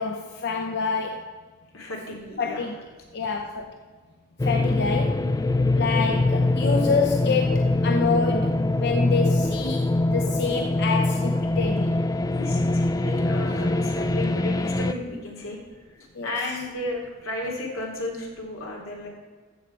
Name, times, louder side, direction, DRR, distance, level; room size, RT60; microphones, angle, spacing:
voice 1, 0.0-1.4 2.4-2.8 3.1-3.7 4.4-5.2 5.7-11.9 16.1-16.3, left 4 dB, 55° left, 3 dB, 0.7 m, -27 dB
voice 2, 1.7-2.6 3.2-3.3 12.3-15.6 15.9-19.1, left 1 dB, 85° left, -1 dB, 2.8 m, -34 dB
sound 1, 4.4-14.9, left 2 dB, 20° left, 0.3 m, -23 dB
14.0 x 7.5 x 4.5 m, 1.4 s
head